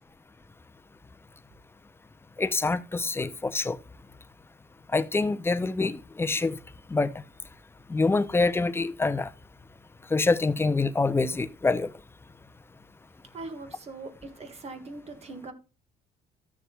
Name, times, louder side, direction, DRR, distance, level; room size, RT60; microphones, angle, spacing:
voice 1, 2.4-3.8 4.9-6.6 6.9-7.1 7.9-9.3 10.1-11.9, left 3 dB, 15° left, 0.6 m, -25 dB
voice 2, 13.3-15.5, right 3 dB, 40° right, 1.7 m, -41 dB
13.5 x 6.6 x 2.3 m
cardioid pair, 110°, 17 cm